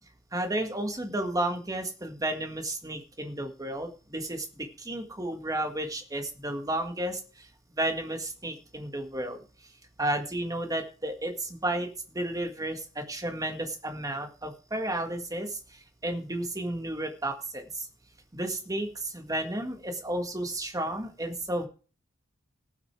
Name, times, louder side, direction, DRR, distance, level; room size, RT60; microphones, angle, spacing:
voice 1, 0.3-4.4 4.8-7.2 7.8-9.4 10.0-11.9 12.1-15.5 16.0-17.8 18.3-21.7, right 1 dB, 20° right, 5 dB, 1.8 m, -32 dB
18.0 x 6.4 x 4.7 m, 0.37 s
head